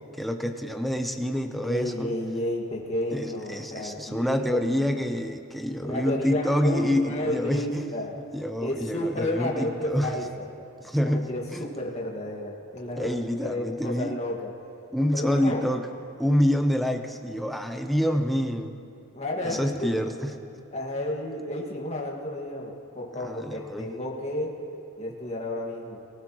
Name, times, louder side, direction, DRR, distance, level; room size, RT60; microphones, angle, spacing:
voice 1, 0.2-2.1 3.1-10.2 10.8-11.7 13.0-14.2 14.9-15.9 16.2-18.8 19.4-20.3 23.1-23.9, equal, ahead, 5 dB, 0.7 m, -27 dB
voice 2, 1.6-4.6 5.8-8.2 8.6-10.5 11.0-13.1 13.4-14.5 15.1-15.6 19.1-19.9 20.7-24.5 25.0-26.0, left 1 dB, 30° left, -2 dB, 1.9 m, -31 dB
23.5 x 15.0 x 3.1 m, 2.8 s
head